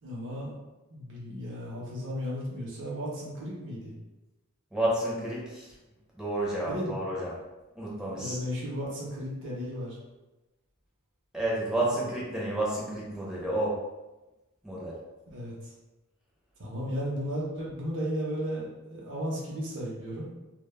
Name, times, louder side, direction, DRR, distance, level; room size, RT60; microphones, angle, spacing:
voice 1, 0.0-0.6 0.9-3.9 6.6-7.0 8.1-10.0 15.3-15.7 16.6-20.3, equal, 55° right, -5 dB, 0.6 m, -35 dB
voice 2, 4.7-5.7 6.2-7.3 7.8-8.4 11.3-13.8 14.6-15.0, right 1 dB, 5° right, -6 dB, 0.5 m, -30 dB
2.1 x 2.0 x 3.1 m, 1.1 s
head